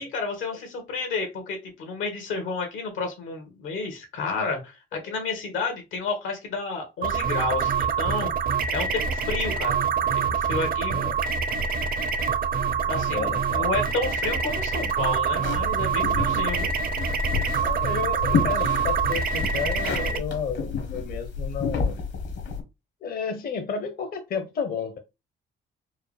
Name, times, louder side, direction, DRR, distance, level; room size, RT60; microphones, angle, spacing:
voice 1, 0.0-8.3 8.7-9.8 10.1-11.1 12.9-16.7, left 4 dB, 85° left, 1.5 m, -31 dB
sound 1, 7.0-20.2, right 6 dB, 45° right, 0.6 m, -25 dB
voice 2, 12.8-13.7 17.6-22.0 23.0-25.0, left 6 dB, 50° left, 0.7 m, -32 dB
sound 2, 15.4-22.6, left 5 dB, 65° left, 1.2 m, -30 dB
4.5 x 2.1 x 3.2 m
cardioid pair, 90°, 20 cm